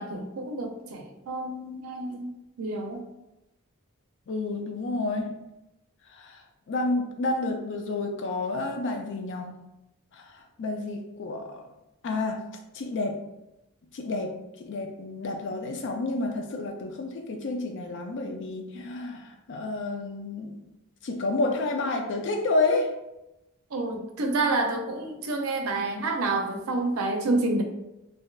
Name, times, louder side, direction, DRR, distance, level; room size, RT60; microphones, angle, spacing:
voice 1, 0.0-2.3 2.6-3.0 23.7-27.6, right 2 dB, 70° right, 4 dB, 0.5 m, -28 dB
voice 2, 4.3-5.3 6.1-6.4 6.7-9.6 10.1-11.6 12.0-12.4 12.7-13.2 13.9-14.3 14.6-20.6 21.0-22.9, left 2 dB, 55° left, 4 dB, 0.4 m, -30 dB
3.2 x 2.6 x 2.3 m, 0.94 s
head